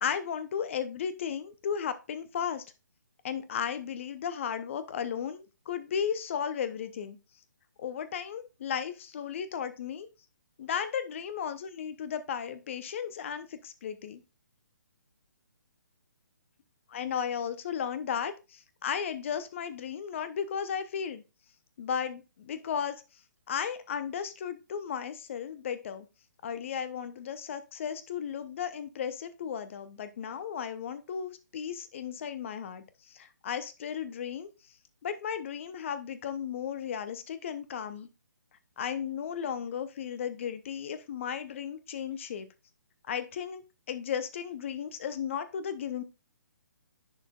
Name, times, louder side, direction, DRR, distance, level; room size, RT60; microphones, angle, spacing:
voice 1, 0.0-2.6 3.2-7.2 7.8-10.1 10.6-14.2 16.9-21.2 21.8-23.0 23.5-26.0 26.4-34.5 35.0-38.1 38.8-42.5 43.1-43.6 43.9-46.0, left 8 dB, 40° left, 12 dB, 0.8 m, -35 dB
10.5 x 5.0 x 2.4 m, 0.28 s
figure-of-eight pair, 135°, 10 cm